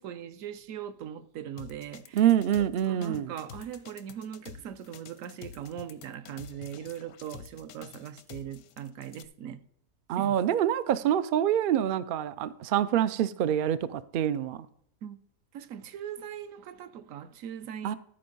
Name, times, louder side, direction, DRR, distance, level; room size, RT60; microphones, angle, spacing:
voice 1, 0.0-2.2 2.9-9.6 10.2-10.4 15.0-15.2 15.5-18.0, right 9 dB, 70° right, 1.0 m, -40 dB
sound 1, 1.6-9.3, left 9 dB, 85° left, 1.1 m, -48 dB
voice 2, 2.1-3.3 10.1-14.7 17.8-17.9, right 10 dB, 90° right, 0.4 m, -26 dB
12.5 x 4.4 x 5.3 m
omnidirectional pair, 1.5 m